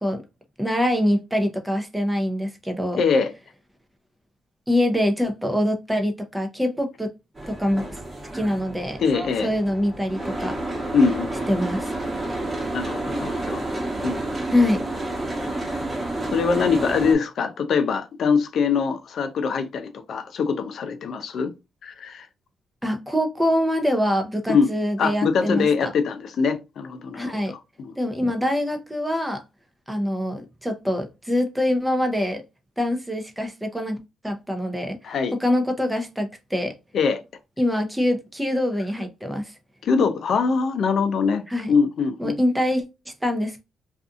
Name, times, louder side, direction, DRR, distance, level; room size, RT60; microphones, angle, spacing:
voice 1, 0.6-3.0 4.7-7.1 7.5-8.0 8.3-9.0 9.4-10.6 11.5-11.9 14.5-14.8 22.8-25.9 27.2-27.5 28.0-29.4 29.9-32.4 32.8-34.0 34.2-35.0 35.3-36.7 37.6-39.5 41.5-41.7 42.2-43.6, left 1 dB, 5° right, 0.6 m, -24 dB
voice 2, 3.0-3.3 9.0-9.5 10.9-11.3 12.7-13.6 14.0-14.2 15.7-15.8 16.3-21.5 21.8-22.3 24.5-24.7 25.0-27.9 35.0-35.3 36.9-37.2 39.8-41.4 41.7-42.4, left 5 dB, 60° left, 0.5 m, -23 dB
Boat Water vehicle, 7.4-17.1, right 2 dB, 25° right, 1.0 m, -30 dB
2.6 x 2.4 x 2.4 m
cardioid pair, 90°, 0 cm